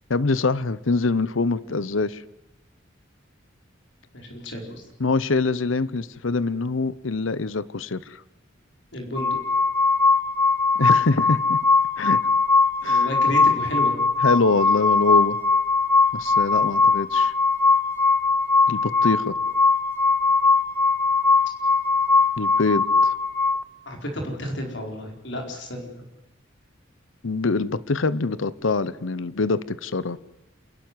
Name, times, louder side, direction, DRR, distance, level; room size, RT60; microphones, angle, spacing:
voice 1, 0.1-2.2 5.0-8.2 10.8-11.6 12.0-12.3 12.8-13.1 14.2-15.4 16.1-17.3 18.7-19.4 22.4-23.1 27.2-30.2, left 3 dB, 85° left, 0.8 m, -24 dB
voice 2, 4.1-4.8 8.9-9.4 12.9-13.9 23.9-26.0, equal, 60° left, 4.5 m, -32 dB
sound 1, 9.2-23.6, left 4 dB, 10° left, 0.9 m, -20 dB
28.0 x 12.0 x 9.5 m
head